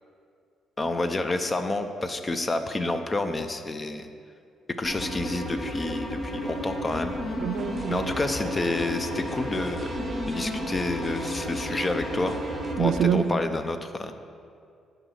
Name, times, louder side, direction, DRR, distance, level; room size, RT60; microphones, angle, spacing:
voice 1, 0.8-4.1 4.8-7.2 7.9-10.0 10.2-12.4 12.8-14.1, left 2 dB, 25° left, 8 dB, 0.6 m, -29 dB
sound 1, 4.8-13.0, left 1 dB, 40° left, 2.1 m, -32 dB
voice 2, 7.4-8.3 12.8-13.4, right 8 dB, 75° right, 12 dB, 0.3 m, -26 dB
sound 2, 7.6-12.7, right 4 dB, 35° right, 0.8 m, -40 dB
10.5 x 3.9 x 6.6 m, 2.3 s
cardioid pair, 90°, 0 cm